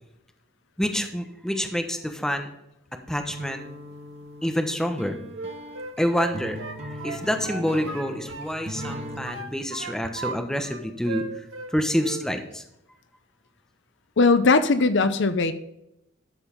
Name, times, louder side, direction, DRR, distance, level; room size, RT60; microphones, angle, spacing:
voice 1, 0.8-2.5 3.1-3.6 4.4-5.2 6.0-11.4 11.7-12.6, equal, 5° left, 5 dB, 1.1 m, -27 dB
sound 1, 3.3-9.4, equal, 35° right, 1.4 m, -39 dB
Wind instrument woodwind instrument, 5.3-8.5 8.8-10.4 10.6-11.7 12.0-12.3, right 4 dB, 85° right, 1.5 m, -36 dB
voice 2, 14.2-15.5, left 3 dB, 65° left, 11 dB, 0.7 m, -19 dB
13.0 x 5.5 x 5.3 m, 0.83 s
head